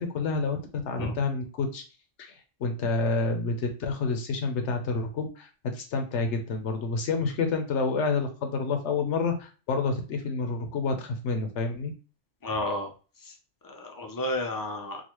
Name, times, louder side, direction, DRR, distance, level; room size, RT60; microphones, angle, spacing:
voice 1, 0.0-1.8 2.2-2.3 2.6-11.9, left 4 dB, 70° left, 5 dB, 1.1 m, -29 dB
voice 2, 12.4-12.9 13.6-15.0, left 1 dB, 30° left, 3 dB, 0.4 m, -31 dB
3.8 x 2.4 x 3.0 m, 0.35 s
omnidirectional pair, 1.3 m